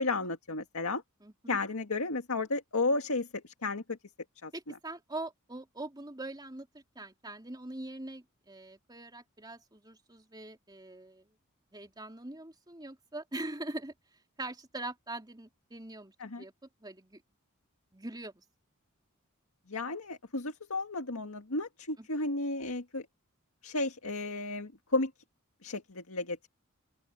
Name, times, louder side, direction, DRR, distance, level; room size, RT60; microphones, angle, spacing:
voice 1, 0.0-1.0 1.5-4.0 4.4-4.8 16.2-16.4 19.7-23.1 23.6-25.1 25.6-26.5, left 3 dB, 85° left, 1.9 m, -33 dB
voice 2, 1.2-1.6 4.5-11.3 11.7-13.9 14.4-16.5 16.8-17.2 17.9-18.4 22.0-22.1, right 2 dB, 20° right, 3.1 m, -43 dB
open air
head